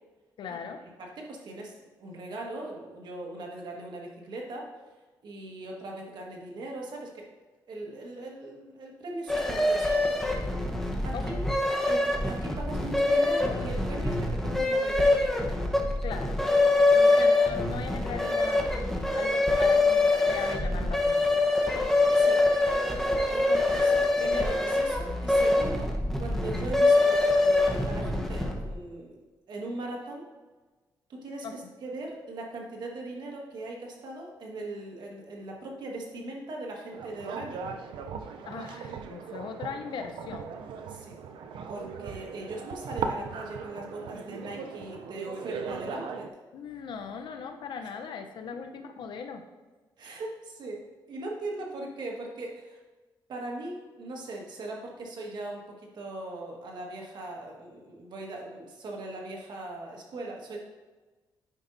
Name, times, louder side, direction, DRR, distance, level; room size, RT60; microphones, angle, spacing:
voice 1, 0.4-0.8 11.1-11.5 16.0-16.4 16.9-18.7 19.1-21.5 31.4-31.7 38.4-40.5 46.5-49.4, left 6 dB, 75° left, 6 dB, 0.7 m, -39 dB
voice 2, 1.0-4.7 5.2-7.3 7.7-9.9 11.0-11.5 11.9-15.3 16.9-17.1 22.1-22.4 23.3-29.2 29.5-30.2 31.1-37.6 40.9-41.2 41.7-46.3 47.8-47.9 50.0-52.8 53.3-60.6, right 2 dB, 65° right, -1 dB, 1.5 m, -39 dB
sound 1, 9.3-28.7, left 2 dB, 5° left, 1.0 m, -24 dB
sound 2, 36.9-46.3, right 6 dB, 85° right, 0.5 m, -38 dB
9.9 x 5.3 x 2.6 m, 1.2 s
cardioid pair, 95°, 8 cm